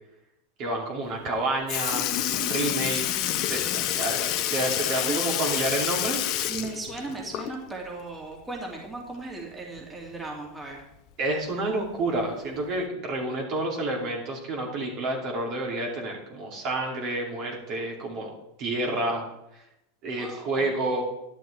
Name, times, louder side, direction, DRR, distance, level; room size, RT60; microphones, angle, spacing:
voice 1, 0.6-3.2 3.5-6.2 11.2-18.3 18.6-19.2 19.5-19.6 20.0-21.0, right 2 dB, 50° right, -1 dB, 2.8 m, -29 dB
Sink (filling or washing) / Liquid, 1.3-1.4 1.7-7.8 8.1-8.2 9.8-9.9 10.8-10.9 11.7-12.0 12.8-12.9, left 12 dB, 50° left, 0.9 m, -28 dB
voice 2, 5.0-5.5 6.5-10.8 20.2-20.7, right 3 dB, 15° right, -2 dB, 2.5 m, -37 dB
11.5 x 10.5 x 3.4 m, 0.84 s
hypercardioid pair, 100°, 0 cm